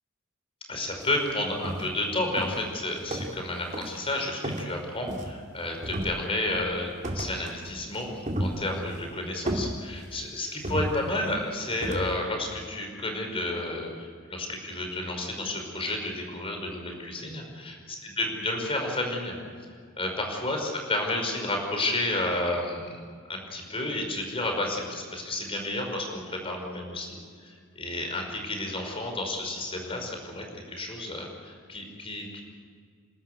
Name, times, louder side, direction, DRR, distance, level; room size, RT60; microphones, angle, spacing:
voice 1, 0.7-19.4 20.0-22.9 23.3-27.2 27.4-32.4, left 2 dB, 25° left, 2 dB, 5.3 m, -31 dB
sound 1, 1.0-1.2 1.6-2.0 2.4-3.5 3.7-4.0 4.4-5.5 5.8-6.5 7.0-7.6 7.9-9.0 9.5-10.2 10.6-11.4 11.8-12.2, equal, 35° right, 2.6 m, -33 dB
29.0 x 13.0 x 9.9 m, 2.1 s
head